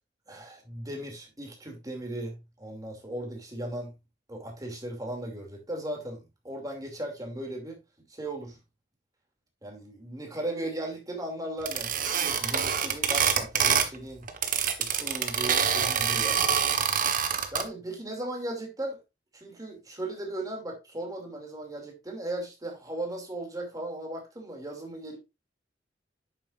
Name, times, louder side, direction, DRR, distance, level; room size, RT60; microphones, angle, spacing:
voice 1, 0.3-3.9 4.3-7.8 8.1-8.6 9.6-14.3 14.8-16.4 17.5-19.0 19.3-25.2, right 1 dB, 20° right, 2.6 m, -37 dB
sound 1, 11.6-13.9 14.2-17.6, right 7 dB, 50° right, 1.2 m, -25 dB
9.0 x 7.3 x 2.5 m
head